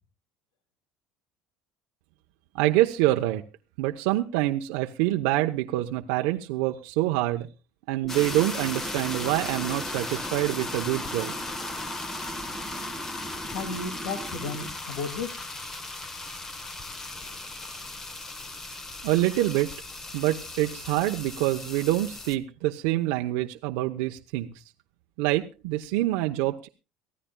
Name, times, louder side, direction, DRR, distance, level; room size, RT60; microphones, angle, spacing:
voice 1, 2.5-3.4 3.8-7.5 7.9-11.3 19.0-19.7 20.1-24.6 25.2-26.7, right 16 dB, 85° right, 4 dB, 0.9 m, -26 dB
sound 1, 8.0-14.7, right 3 dB, 10° right, 1.3 m, -41 dB
sound 2, 8.1-22.4, left 2 dB, 20° left, 1.3 m, -37 dB
voice 2, 13.5-15.5, left 4 dB, 90° left, 8 dB, 2.4 m, -34 dB
23.5 x 15.0 x 2.3 m, 0.32 s
cardioid pair, 145°, 2 cm